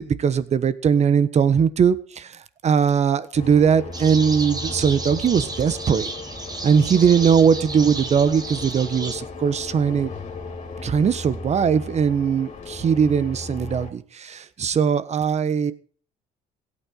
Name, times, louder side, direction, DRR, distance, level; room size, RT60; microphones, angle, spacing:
voice 1, 0.0-6.1 6.6-10.1 10.8-15.7, right 7 dB, 40° right, 1.3 m, -20 dB
sound 1, 3.3-13.9, left 3 dB, 45° left, 3.6 m, -36 dB
sound 2, 3.9-9.1, right 3 dB, 25° right, 2.4 m, -33 dB
16.5 x 9.0 x 6.5 m
cardioid pair, 110°, 17 cm